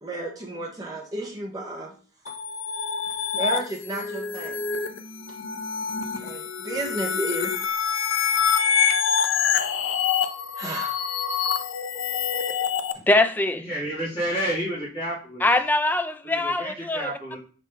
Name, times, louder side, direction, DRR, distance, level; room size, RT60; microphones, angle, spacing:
voice 1, 0.0-1.9 3.3-4.6 6.2-7.5 10.6-11.0, right 2 dB, 20° right, 1.5 m, -32 dB
sound 1, 2.3-12.9, left 7 dB, 75° left, 0.6 m, -26 dB
voice 2, 13.1-13.7 15.4-17.4, left 2 dB, 10° left, 0.3 m, -23 dB
voice 3, 13.6-15.5 16.2-17.4, right 1 dB, 30° left, 3.0 m, -30 dB
5.3 x 5.0 x 3.9 m
head